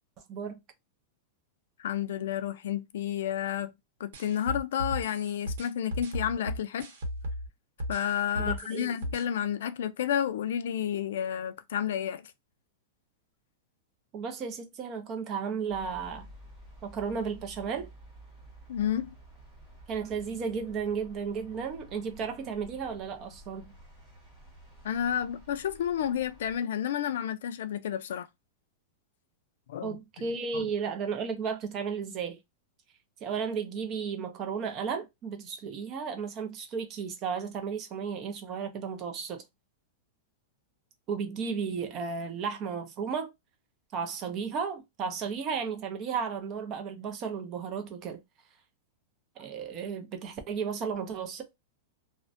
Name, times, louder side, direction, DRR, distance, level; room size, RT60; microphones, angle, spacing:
voice 1, 0.3-0.6 8.4-8.9 14.1-16.3 16.8-17.9 19.9-23.7 29.8-32.4 33.2-39.4 41.1-43.3 43.9-48.2 49.4-51.4, right 6 dB, 25° right, 0.5 m, -34 dB
voice 2, 1.8-3.7 4.0-6.9 7.9-12.3 18.7-19.1 24.8-28.3 29.7-30.3 30.5-30.7, left 9 dB, 70° left, 0.3 m, -31 dB
sound 1, 4.1-7.5 7.8-9.2, equal, 65° right, 0.9 m, -35 dB
sound 2, 15.7-26.6, equal, 5° left, 1.1 m, -52 dB
2.4 x 2.1 x 2.5 m
supercardioid pair, 175°, 0 cm